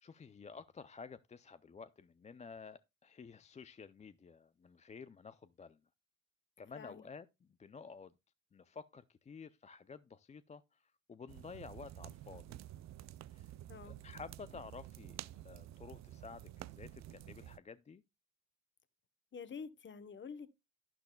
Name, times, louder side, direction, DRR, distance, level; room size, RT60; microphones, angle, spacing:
voice 1, 0.0-5.8 6.6-7.3 7.6-8.1 8.5-12.6 13.3-13.5 13.8-18.0, left 5 dB, 25° left, 0.4 m, -52 dB
voice 2, 6.7-7.1 13.7-14.0 19.3-20.5, left 6 dB, 40° left, 1.0 m, -48 dB
sound 1, 11.3-17.6, right 13 dB, 65° right, 0.5 m, -51 dB
11.5 x 10.5 x 2.2 m
cardioid pair, 90°, 30 cm